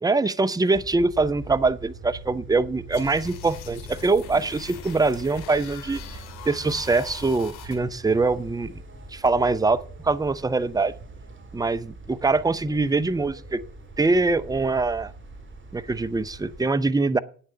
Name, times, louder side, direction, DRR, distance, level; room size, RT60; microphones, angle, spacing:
voice 1, 0.0-6.0 6.5-8.8 9.1-10.9 11.5-13.6 14.0-15.1 15.7-17.2, right 3 dB, 10° right, 14 dB, 0.7 m, -23 dB
sound 1, 0.7-16.7, right 3 dB, 25° right, 2.3 m, -43 dB
sound 2, 2.9-7.8, left 8 dB, 75° left, 2.5 m, -42 dB
8.9 x 6.9 x 8.4 m, 0.44 s
hypercardioid pair, 55°, 50 cm